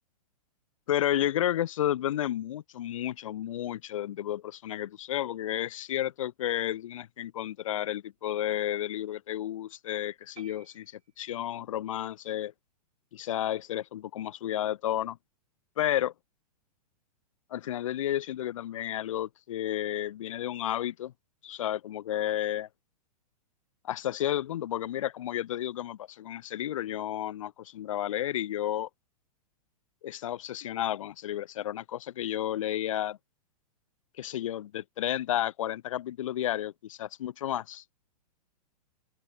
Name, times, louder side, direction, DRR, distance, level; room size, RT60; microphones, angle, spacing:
voice 1, 0.9-12.5 13.1-15.2 15.8-16.1 17.5-21.1 21.4-22.7 23.8-28.9 30.0-33.2 34.2-37.8, left 12 dB, 55° left, 0.7 m, -32 dB
sound 1, 10.4-11.6, right 7 dB, 65° right, 5.1 m, -56 dB
open air
figure-of-eight pair, 105°, 20 cm